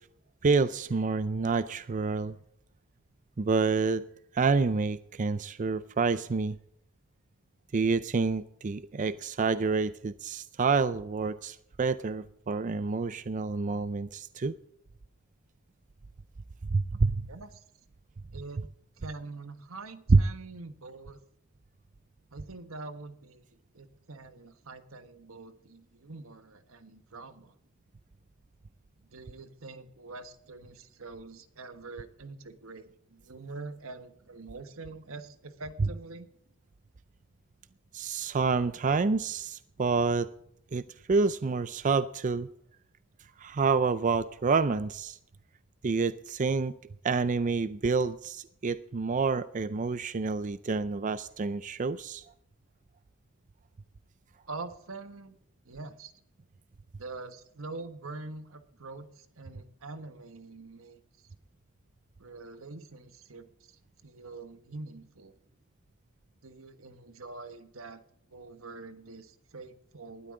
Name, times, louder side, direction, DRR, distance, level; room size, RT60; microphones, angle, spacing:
voice 1, 0.4-2.4 3.4-4.0 4.3-6.6 7.7-14.5 16.7-17.3 20.1-20.2 37.9-40.3 40.7-42.5 43.4-45.2 45.8-46.7 47.0-52.2, right 4 dB, 40° right, 14 dB, 0.4 m, -28 dB
voice 2, 17.3-17.6 18.3-18.6 19.0-21.2 22.3-27.6 29.1-36.3 54.5-55.4 55.6-56.1 57.0-61.3 62.2-65.3 66.4-68.0 68.3-70.3, right 3 dB, 85° right, 9 dB, 1.4 m, -45 dB
19.5 x 12.5 x 3.8 m, 0.74 s
head